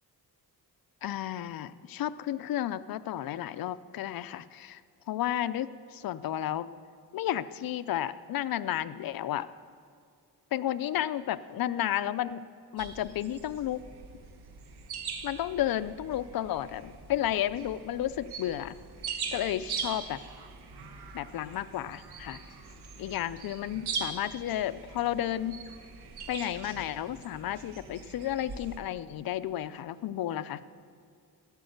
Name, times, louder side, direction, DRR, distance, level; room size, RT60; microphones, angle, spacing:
voice 1, 1.0-4.8 5.1-6.7 7.1-9.5 10.5-12.4 12.7-13.8 15.2-18.8 19.3-20.2 21.1-22.4 23.0-25.6 26.3-30.6, left 12 dB, 65° left, 14 dB, 0.5 m, -32 dB
sound 1, 12.8-28.8, right 5 dB, 90° right, 1.2 m, -42 dB
13.0 x 8.3 x 7.9 m, 2.2 s
wide cardioid pair, 145°, 38 cm